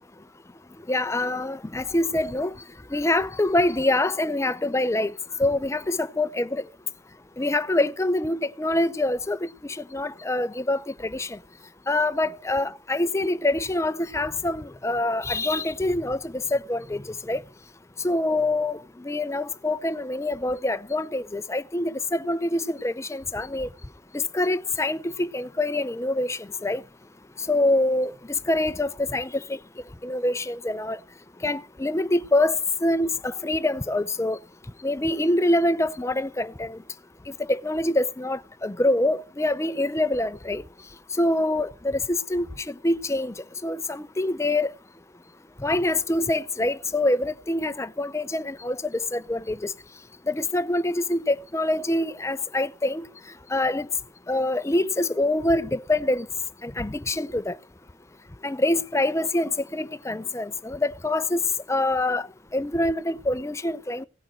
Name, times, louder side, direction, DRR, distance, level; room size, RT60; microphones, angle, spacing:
voice 1, 0.9-2.5 2.9-5.1 5.4-6.6 7.4-11.4 11.9-17.4 18.0-23.7 24.1-26.8 27.5-29.6 30.0-31.0 31.4-34.4 34.8-36.8 37.4-40.6 41.2-43.3 43.6-44.7 45.6-49.7 50.3-53.1 53.5-53.9 54.3-56.3 56.6-57.6 58.4-61.4 61.7-64.1, left 2 dB, 15° left, 0.5 m, -25 dB
17.0 x 6.4 x 4.5 m
head